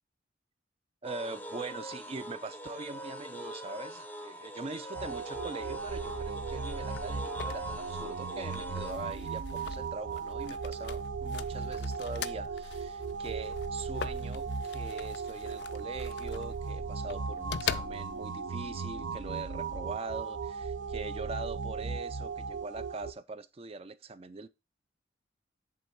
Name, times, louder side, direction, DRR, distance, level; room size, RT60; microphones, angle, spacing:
sound 1, 1.0-8.9, equal, 10° left, 0.6 m, -43 dB
voice 1, 1.0-24.5, right 3 dB, 30° right, 0.4 m, -42 dB
sound 2, 4.9-23.1, right 5 dB, 80° right, 0.6 m, -37 dB
sound 3, 5.7-18.4, left 8 dB, 60° left, 0.4 m, -43 dB
7.9 x 3.6 x 4.6 m
head